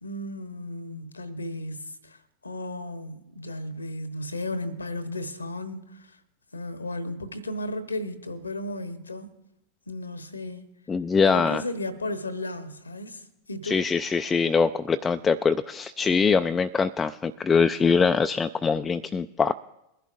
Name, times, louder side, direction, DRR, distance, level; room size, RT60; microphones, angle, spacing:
voice 1, 0.0-6.2 6.5-9.3 9.9-10.6 11.3-13.8, left 1 dB, 80° left, 1.0 m, -34 dB
voice 2, 10.9-11.6 13.6-19.5, left 5 dB, 15° left, 0.3 m, -23 dB
22.5 x 11.5 x 2.5 m
figure-of-eight pair, 90°, 0 cm